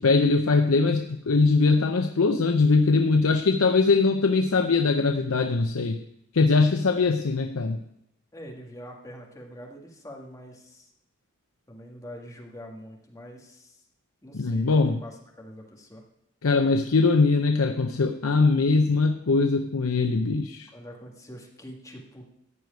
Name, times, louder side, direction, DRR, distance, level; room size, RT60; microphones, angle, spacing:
voice 1, 0.0-6.0 6.3-7.8 14.3-15.0 16.4-20.7, left 3 dB, 85° left, 6 dB, 0.7 m, -21 dB
voice 2, 8.3-10.9 11.7-13.8 14.2-16.0 20.7-22.3, equal, 15° left, -1 dB, 1.9 m, -44 dB
14.5 x 4.8 x 9.2 m, 0.80 s
head